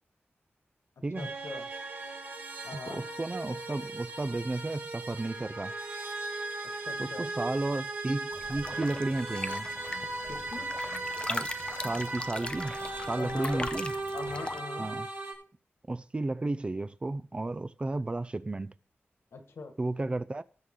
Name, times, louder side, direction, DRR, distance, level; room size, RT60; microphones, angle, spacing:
sound 1, 1.1-15.3, right 2 dB, 60° right, 4.5 m, -37 dB
voice 1, 1.2-1.7 2.6-3.0 6.9-7.3 10.3-10.7 13.2-13.7 14.1-14.9 19.3-19.7, left 4 dB, 80° left, 1.9 m, -41 dB
voice 2, 2.7-5.7 7.0-9.7 11.3-11.5 11.8-12.8 13.1-13.9 14.8-15.1 15.9-18.7 19.8-20.4, right 2 dB, 25° right, 0.5 m, -33 dB
sound 2, 8.3-14.6, left 2 dB, 25° left, 0.6 m, -39 dB
19.0 x 6.4 x 3.8 m
wide cardioid pair, 135°, 4 cm